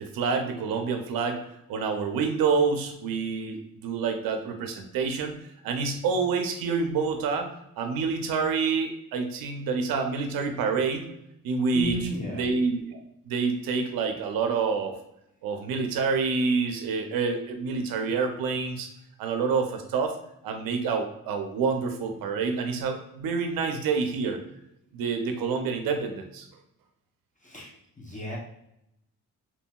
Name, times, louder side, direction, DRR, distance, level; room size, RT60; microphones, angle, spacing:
voice 1, 0.0-1.4 1.7-5.3 5.6-7.5 7.8-11.0 11.4-13.0 13.3-15.0 15.4-18.9 19.2-20.2 20.4-24.4 24.9-26.5, right 5 dB, 80° right, 6 dB, 0.5 m, -27 dB
voice 2, 11.7-12.4 27.4-27.7 28.0-28.4, left 1 dB, 20° left, -3 dB, 0.7 m, -33 dB
2.9 x 2.7 x 2.2 m, 0.80 s
cardioid pair, 70°, 34 cm